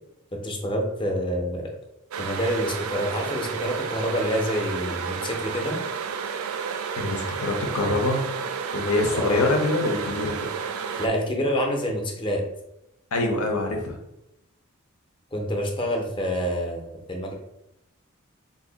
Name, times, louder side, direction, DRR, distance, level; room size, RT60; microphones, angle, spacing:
voice 1, 0.3-1.7 2.2-5.8 9.1-9.5 11.0-12.4 15.3-17.3, equal, 25° left, 2 dB, 0.6 m, -27 dB
sound 1, 2.1-11.1, right 6 dB, 70° right, 0.3 m, -31 dB
voice 2, 7.0-8.2 8.7-10.5 13.1-14.0, left 2 dB, 85° left, 2 dB, 0.8 m, -25 dB
2.7 x 2.7 x 3.9 m, 0.86 s
head